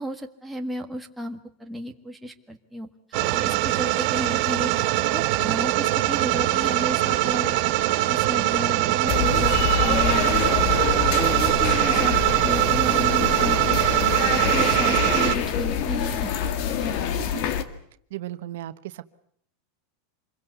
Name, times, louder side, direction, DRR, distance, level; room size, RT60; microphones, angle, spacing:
voice 1, 0.0-2.9 3.3-7.5 8.0-13.8 14.2-16.3 16.7-16.9, right 1 dB, 5° right, 3 dB, 1.7 m, -33 dB
sound 1, 3.1-15.4, right 17 dB, 45° right, 1.4 m, -22 dB
sound 2, 9.1-17.6, left 8 dB, 45° left, 1.9 m, -26 dB
voice 2, 18.1-19.0, right 14 dB, 70° right, 11 dB, 1.2 m, -36 dB
26.5 x 22.5 x 8.3 m, 0.66 s
supercardioid pair, 160°, 0 cm